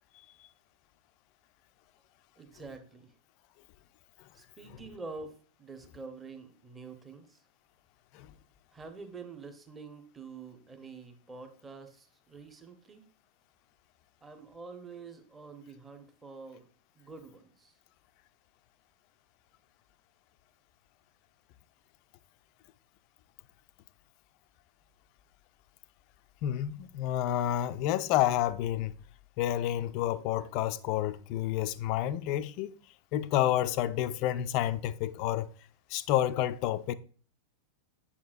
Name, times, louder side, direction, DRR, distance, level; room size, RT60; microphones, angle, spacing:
voice 1, 2.4-3.1 4.3-5.3 5.6-7.4 8.7-13.0 14.2-16.7 17.0-17.7, right 4 dB, 15° right, 1.0 m, -47 dB
voice 2, 26.4-28.9 29.4-32.7 33.1-35.5 35.9-36.9, left 12 dB, 45° left, 0.4 m, -29 dB
8.4 x 7.3 x 2.5 m
figure-of-eight pair, 90°, 0 cm